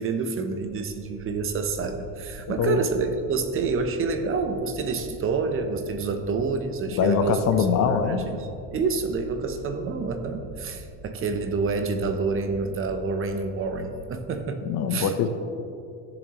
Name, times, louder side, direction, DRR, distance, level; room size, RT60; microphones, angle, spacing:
voice 1, 0.0-8.4 8.7-15.1, right 4 dB, 35° right, 7 dB, 0.9 m, -28 dB
sound 1, 0.6-14.0, equal, ahead, 2.5 m, -44 dB
voice 2, 2.5-2.8 7.0-8.3 14.6-15.3, left 7 dB, 45° left, 8 dB, 0.8 m, -23 dB
16.5 x 7.1 x 3.1 m, 2.5 s
supercardioid pair, 125°, 38 cm